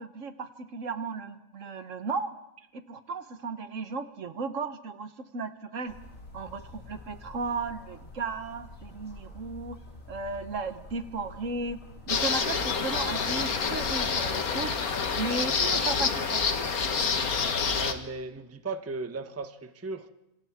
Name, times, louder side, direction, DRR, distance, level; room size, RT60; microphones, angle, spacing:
voice 1, 0.0-2.3 2.7-5.9 6.3-9.8 10.1-11.8 12.1-14.8 15.2-16.7, right 4 dB, 65° right, 1.4 m, -35 dB
sound 1, 5.9-14.1, left 2 dB, 65° left, 3.6 m, -47 dB
sound 2, 12.1-17.9, left 5 dB, 90° left, 1.8 m, -27 dB
Engine, 12.6-17.2 17.6-17.9, left 2 dB, 45° left, 2.3 m, -47 dB
voice 2, 17.8-20.1, right 3 dB, 15° right, 0.7 m, -36 dB
27.5 x 26.5 x 3.6 m
omnidirectional pair, 1.5 m